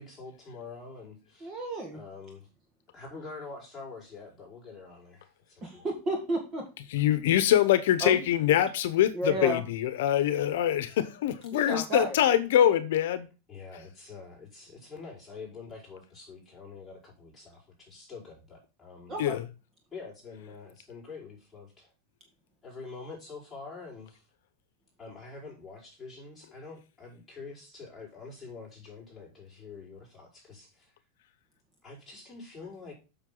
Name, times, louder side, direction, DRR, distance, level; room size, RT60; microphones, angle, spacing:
voice 1, 0.0-1.5 1.9-2.5 2.9-5.9 13.5-19.2 19.9-21.9 22.6-24.2 25.0-30.9 31.8-32.9, left 4 dB, 5° left, -6 dB, 5.1 m, -46 dB
voice 2, 1.4-2.0 5.6-6.7 8.0-8.2 9.1-9.6 11.5-12.2 19.1-19.4, right 1 dB, 20° right, 2 dB, 1.7 m, -31 dB
voice 3, 6.9-13.3 19.2-19.4, left 11 dB, 70° left, 13 dB, 0.9 m, -24 dB
8.1 x 6.6 x 3.8 m, 0.31 s
supercardioid pair, 170°, 0 cm